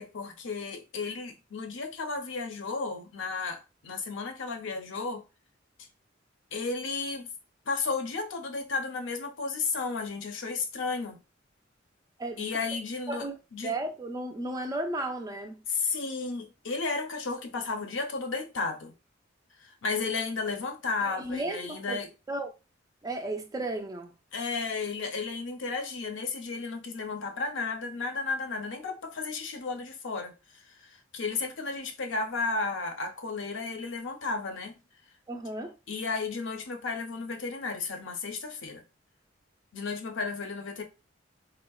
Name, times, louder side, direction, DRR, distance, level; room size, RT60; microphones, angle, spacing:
voice 1, 0.0-5.2 6.5-7.3 7.7-11.2 12.4-13.8 15.7-18.9 19.6-22.1 24.3-34.8 35.9-38.8 39.7-40.8, left 4 dB, 75° left, 0.6 m, -33 dB
voice 2, 13.6-15.6 21.0-22.0 22.3-22.5 23.0-24.1 35.3-35.7, right 2 dB, 20° right, 0.4 m, -34 dB
3.5 x 2.1 x 2.3 m
head